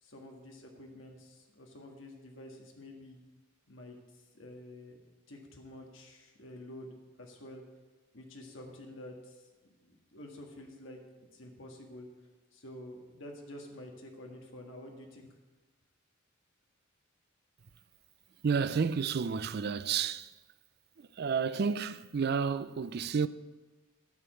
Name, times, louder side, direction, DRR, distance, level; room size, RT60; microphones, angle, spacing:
voice 1, 0.0-3.2 3.7-5.0 5.3-7.6 8.1-9.5 9.8-12.1 12.5-15.3, left 1 dB, 65° left, 1.7 m, -49 dB
voice 2, 18.4-20.3 21.0-23.3, right 6 dB, 50° right, 0.4 m, -31 dB
13.0 x 5.1 x 7.7 m
head